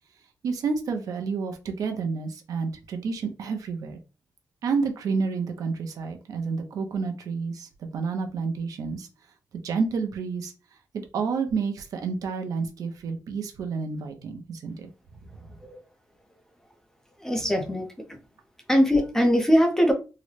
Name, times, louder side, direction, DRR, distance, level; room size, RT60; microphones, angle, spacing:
voice 1, 0.4-4.0 4.6-9.1 9.6-10.5 11.1-14.9 15.5-15.6, right 5 dB, 75° right, 5 dB, 0.6 m, -29 dB
voice 2, 17.2-17.9 18.7-19.9, equal, 10° left, 4 dB, 0.6 m, -21 dB
3.7 x 2.1 x 3.2 m, 0.32 s
wide cardioid pair, 150°, 6 cm